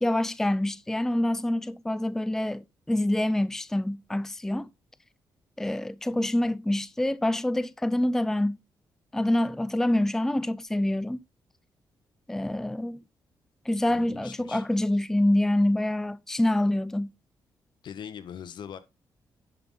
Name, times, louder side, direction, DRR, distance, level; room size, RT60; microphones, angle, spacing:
voice 1, 0.0-4.7 5.6-8.6 9.1-11.2 12.3-13.0 13.7-17.1, left 1 dB, 5° left, 0.4 m, -26 dB
voice 2, 13.9-14.6 17.8-18.8, left 8 dB, 75° left, 1.2 m, -41 dB
10.5 x 5.5 x 3.8 m
cardioid pair, 75°, 8 cm